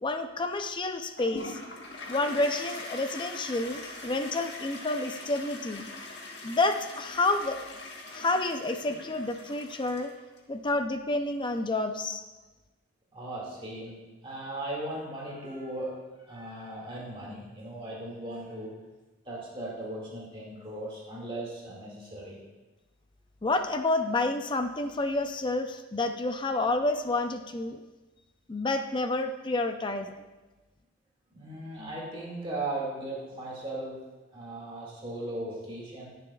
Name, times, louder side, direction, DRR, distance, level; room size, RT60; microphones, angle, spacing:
voice 1, 0.0-1.6 2.1-5.9 6.4-7.6 8.1-10.1 10.5-12.2 23.4-27.8 28.5-30.1, left 2 dB, 25° left, 7 dB, 0.4 m, -29 dB
Toilet flush, 1.2-10.4, left 2 dB, 60° left, 1.4 m, -42 dB
voice 2, 13.1-14.0 14.2-18.7 19.2-22.4 31.3-34.0 34.3-36.1, right 1 dB, 25° right, -4 dB, 2.1 m, -37 dB
20.0 x 6.9 x 2.3 m, 1.2 s
head